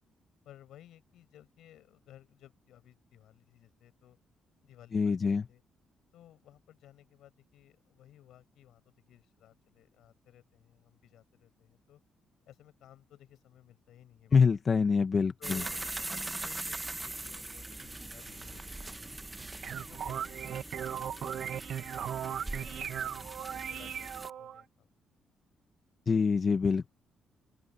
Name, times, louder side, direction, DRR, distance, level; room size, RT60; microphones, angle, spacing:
voice 1, 0.4-4.2 4.6-5.6 6.1-12.0 12.5-14.4 15.4-15.8 16.4-19.3 19.6-21.3 22.0-24.9, left 12 dB, 80° left, 6.5 m, -57 dB
voice 2, 4.9-5.4 14.3-15.6 26.1-26.9, left 5 dB, 40° left, 1.0 m, -25 dB
sound 1, 15.4-24.3, right 2 dB, 15° right, 0.7 m, -41 dB
sound 2, 19.4-24.6, right 9 dB, 65° right, 1.1 m, -38 dB
open air
cardioid pair, 95°, 0 cm